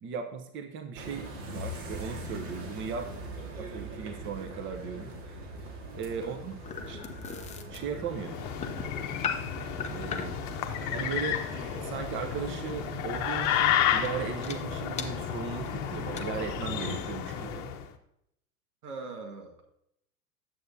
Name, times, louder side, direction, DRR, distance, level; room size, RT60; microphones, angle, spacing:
voice 1, 0.0-3.1 3.6-5.5 6.0-6.5 6.9-7.0 7.7-8.4 9.9-10.3 10.9-11.4 11.8-17.7, right 6 dB, 25° right, 6 dB, 0.8 m, -37 dB
sound 1, 0.9-17.0, right 1 dB, 55° right, 2.0 m, -42 dB
sound 2, 5.8-10.5 12.7-12.9 13.4-13.6 14.0-14.1 14.4-14.6 15.0-15.1 15.6-15.7 15.9-16.2, left 6 dB, 15° left, 0.6 m, -38 dB
voice 2, 6.1-6.7 18.8-19.7, right 4 dB, 80° right, 4 dB, 1.7 m, -42 dB
sound 3, 8.1-17.8, left 9 dB, 40° left, 0.9 m, -32 dB
9.2 x 7.0 x 2.7 m, 0.76 s
hypercardioid pair, 100°, 44 cm